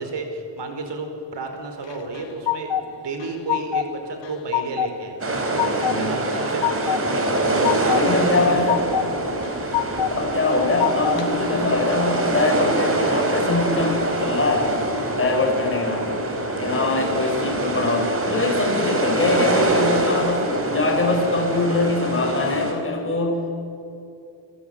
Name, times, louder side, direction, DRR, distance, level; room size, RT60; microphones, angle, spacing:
voice 1, 0.0-5.2 6.0-7.0 7.5-8.6 10.0-10.2 17.1-17.4, right 3 dB, 70° right, 5 dB, 5.0 m, -32 dB
sound 1, 1.8-2.8 3.2-3.9 4.2-4.9 5.3-6.0 6.3-7.0 7.4-8.0 8.4-9.1 9.4-10.1 10.5-11.3, left 11 dB, 75° left, 1.9 m, -25 dB
sound 2, 5.2-22.7, right 2 dB, 30° right, 4.3 m, -24 dB
voice 2, 5.9-6.3 7.9-8.9 10.1-14.7 15.2-16.2 16.6-23.6, left 2 dB, 30° left, 2 dB, 4.5 m, -23 dB
29.0 x 21.5 x 9.3 m, 2.7 s
wide cardioid pair, 180°, 44 cm